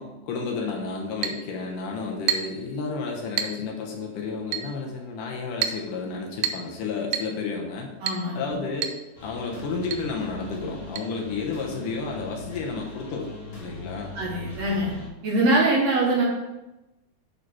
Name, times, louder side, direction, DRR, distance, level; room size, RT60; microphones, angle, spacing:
voice 1, 0.0-7.9 8.3-8.9 9.2-14.2, left 4 dB, 70° left, 0 dB, 2.5 m, -31 dB
Chink clink, 1.2-1.4 2.3-2.6 3.4-3.6 4.5-4.7 5.6-5.8 6.4-6.7 7.1-7.3 8.1-8.3 8.8-9.0 9.3-9.4 9.9-10.1 11.0-11.1, right 8 dB, 85° right, 2.4 m, -28 dB
voice 2, 8.0-8.6 14.2-14.9 15.2-16.2, right 2 dB, 60° right, -3 dB, 2.0 m, -23 dB
sound 1, 9.1-15.1, left 1 dB, 35° left, 1.6 m, -40 dB
9.5 x 4.0 x 4.8 m, 0.98 s
omnidirectional pair, 4.0 m